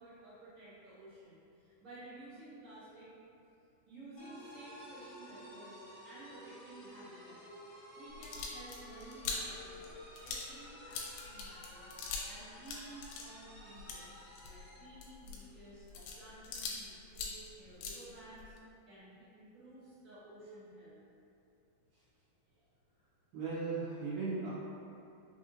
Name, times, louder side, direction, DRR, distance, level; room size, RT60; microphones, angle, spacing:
voice 1, 0.0-3.1 3.9-7.4 7.9-12.0 12.2-14.2 14.4-18.5 18.8-21.0, right 2 dB, 55° right, -16 dB, 0.8 m, -54 dB
sound 1, 4.2-14.9, equal, 55° left, 1.6 m, -52 dB
sound 2, 8.1-12.4 12.6-16.8 17.1-18.6, left 4 dB, 85° left, 2.4 m, -43 dB
voice 2, 23.3-24.5, right 4 dB, 75° right, -12 dB, 2.2 m, -37 dB
5.5 x 2.6 x 2.7 m, 2.6 s
omnidirectional pair, 4.3 m